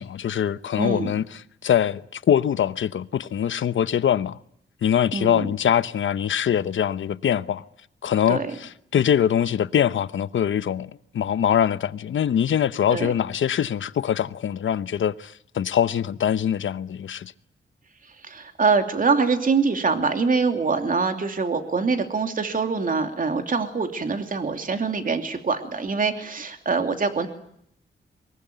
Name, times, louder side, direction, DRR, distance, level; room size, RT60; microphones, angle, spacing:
voice 1, 0.0-4.4 4.8-7.6 8.0-17.3, left 9 dB, 80° left, 0.9 m, -23 dB
voice 2, 0.8-1.1 5.1-5.5 8.3-8.5 12.9-13.1 18.2-27.3, right 4 dB, 45° right, 2.7 m, -24 dB
24.0 x 21.0 x 9.2 m
wide cardioid pair, 125°, 20 cm